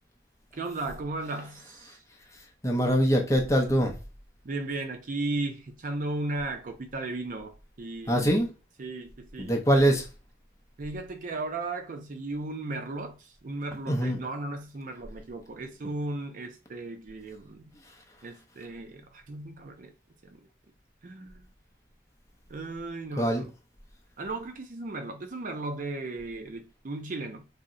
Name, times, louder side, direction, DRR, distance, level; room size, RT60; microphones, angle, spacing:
voice 1, 0.5-2.0 4.4-8.5 8.8-9.6 10.8-17.7 18.2-19.9 20.2-20.4 21.0-21.5 22.5-23.5 24.2-27.4, right 2 dB, 45° right, 0.4 m, -36 dB
voice 2, 2.6-3.9 8.1-8.5 9.4-10.1 13.9-14.2 23.2-23.4, equal, 15° left, 0.6 m, -23 dB
2.7 x 2.0 x 3.7 m
head